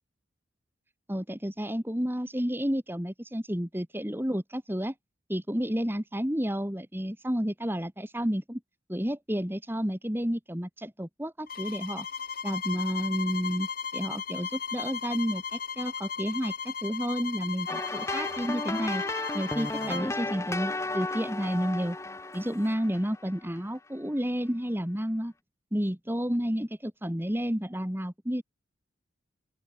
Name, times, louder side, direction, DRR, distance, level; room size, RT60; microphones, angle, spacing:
voice 1, 1.1-4.9 5.3-8.6 8.9-12.1 12.4-19.0 19.3-22.0 22.3-25.3 25.7-28.4, equal, 10° right, 2.4 m, -31 dB
sound 1, 11.5-20.1, left 6 dB, 45° left, 2.1 m, -36 dB
sound 2, 17.7-23.6, left 2 dB, 15° left, 0.9 m, -34 dB
open air
head